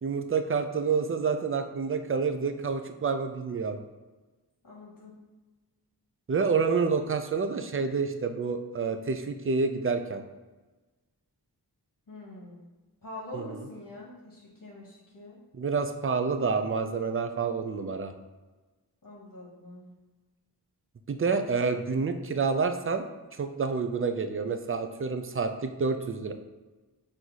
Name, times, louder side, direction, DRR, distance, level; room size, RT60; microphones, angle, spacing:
voice 1, 0.0-3.8 6.3-10.2 13.3-13.7 15.5-18.1 21.1-23.1 23.3-26.3, right 5 dB, 35° right, 7 dB, 0.4 m, -28 dB
voice 2, 4.6-5.2 12.1-12.6 13.0-15.4 19.0-19.9, left 1 dB, 55° left, -5 dB, 1.1 m, -44 dB
4.5 x 2.6 x 4.0 m, 1.2 s
wide cardioid pair, 60°, 41 cm